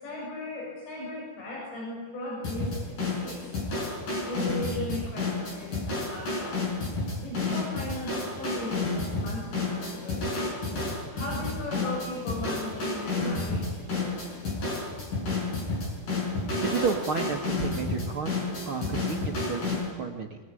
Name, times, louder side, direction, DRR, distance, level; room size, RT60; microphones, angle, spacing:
voice 1, 0.0-3.4 4.2-6.6 7.2-10.5 11.1-14.2, left 1 dB, 70° left, -3 dB, 9.9 m, -37 dB
sound 1, 2.4-19.9, left 3 dB, 45° left, 7.9 m, -31 dB
voice 2, 16.6-20.4, right 5 dB, 80° right, 3 dB, 1.1 m, -32 dB
26.0 x 22.5 x 9.9 m, 1.3 s
omnidirectional pair, 5.1 m